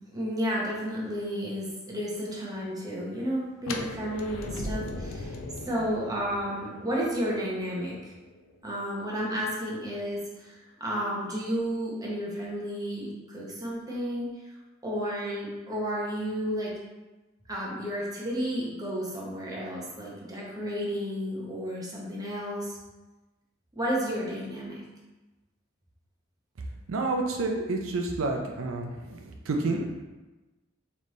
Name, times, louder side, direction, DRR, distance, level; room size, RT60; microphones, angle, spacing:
voice 1, 0.1-5.4 5.6-8.1 8.6-14.3 14.8-16.7 17.5-22.8 23.7-24.8, equal, 20° right, -4 dB, 0.9 m, -32 dB
sound 1, 3.6-9.5, left 2 dB, 90° left, 0.5 m, -39 dB
voice 2, 26.9-29.9, right 2 dB, 85° right, 2 dB, 0.5 m, -29 dB
4.2 x 3.1 x 3.1 m, 1.1 s
head